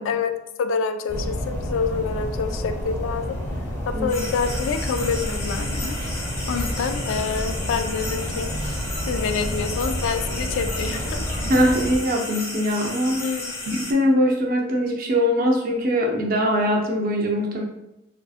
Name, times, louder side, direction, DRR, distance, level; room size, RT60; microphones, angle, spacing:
voice 1, 0.0-3.4 3.9-8.6 9.1-11.3 13.2-13.5, left 5 dB, 75° left, 8 dB, 0.3 m, -27 dB
sound 1, 1.1-12.0, equal, 15° left, 0.9 m, -29 dB
sound 2, 4.1-13.9, left 1 dB, 55° left, 1.0 m, -33 dB
voice 2, 11.4-13.2 13.7-17.6, equal, 50° right, 0 dB, 0.6 m, -22 dB
3.4 x 2.7 x 2.4 m, 0.89 s
head